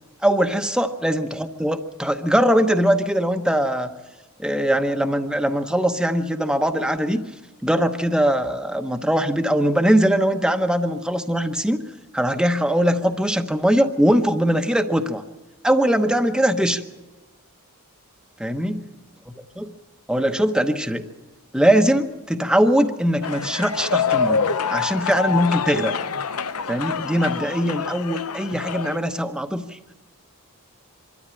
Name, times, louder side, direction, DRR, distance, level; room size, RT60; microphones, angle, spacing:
voice 1, 0.2-3.9 4.4-7.2 7.6-11.8 12.1-15.2 15.6-16.8 18.4-18.7 19.3-19.7 20.1-21.1 21.5-26.0 26.7-29.8, equal, 5° right, 6 dB, 0.9 m, -21 dB
sound 1, 23.2-29.0, left 6 dB, 90° left, 0.9 m, -26 dB
24.5 x 13.0 x 8.9 m, 1.2 s
head